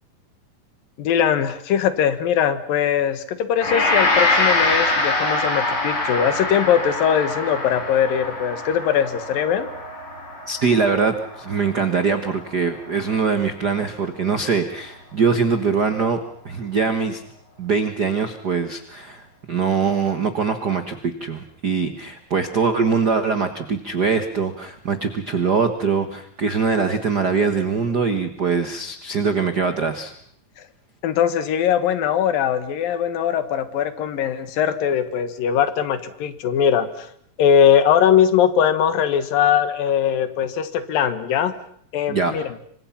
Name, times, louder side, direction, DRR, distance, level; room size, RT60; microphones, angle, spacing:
voice 1, 1.0-9.7 31.0-37.1 37.4-41.6 41.9-42.4, left 8 dB, 80° left, 12 dB, 3.2 m, -20 dB
Gong, 3.6-12.8, left 2 dB, 30° left, 4.6 m, -24 dB
voice 2, 10.5-16.2 16.4-17.2 17.6-30.1 42.1-42.3, right 5 dB, 60° right, 8 dB, 1.0 m, -22 dB
27.0 x 25.0 x 5.8 m, 0.65 s
omnidirectional pair, 4.0 m